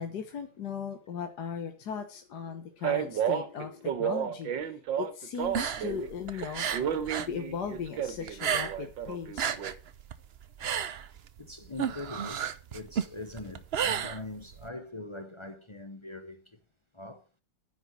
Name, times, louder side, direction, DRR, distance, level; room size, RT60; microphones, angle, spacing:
voice 1, 0.0-9.5, left 7 dB, 65° left, 1.6 m, -38 dB
Male speech man speaking, 2.8-6.1 6.3-9.7, right 9 dB, 85° right, 1.8 m, -32 dB
sound 1, 5.4-7.4 7.6-9.0 9.2-14.7, right 8 dB, 65° right, 0.6 m, -32 dB
voice 2, 11.4-16.6 16.9-17.3, left 2 dB, 35° left, 0.4 m, -42 dB
10.0 x 5.2 x 8.2 m
omnidirectional pair, 2.0 m